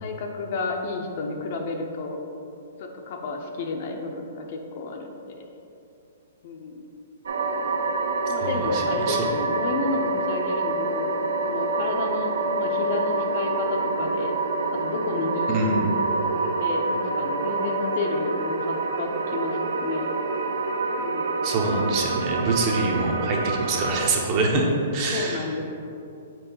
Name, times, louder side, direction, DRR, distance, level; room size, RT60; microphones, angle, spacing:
voice 1, 0.0-2.2 2.8-5.4 6.4-6.9 8.3-11.1 11.4-14.3 14.7-15.9 16.3-20.1 21.0-21.4 25.1-25.7, left 3 dB, 45° left, 2 dB, 0.6 m, -31 dB
sound 1, 7.3-24.1, right 3 dB, 85° right, 0.4 m, -27 dB
voice 2, 8.4-9.3 15.5-15.8 21.4-25.4, right 2 dB, 30° right, 0 dB, 0.8 m, -25 dB
4.5 x 3.8 x 5.4 m, 2.7 s
hypercardioid pair, 160°, 0 cm